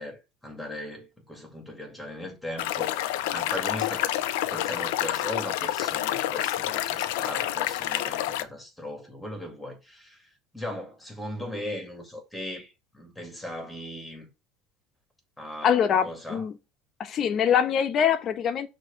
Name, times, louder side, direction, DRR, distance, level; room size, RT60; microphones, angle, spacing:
voice 1, 0.0-4.1 4.5-10.3 10.5-14.3 15.4-16.4, left 1 dB, 5° left, 2.1 m, -38 dB
sound 1, 2.6-8.4, left 13 dB, 90° left, 0.5 m, -28 dB
voice 2, 15.6-16.5 17.0-18.7, left 8 dB, 45° left, 0.9 m, -24 dB
6.2 x 3.0 x 5.5 m
supercardioid pair, 120°, 0 cm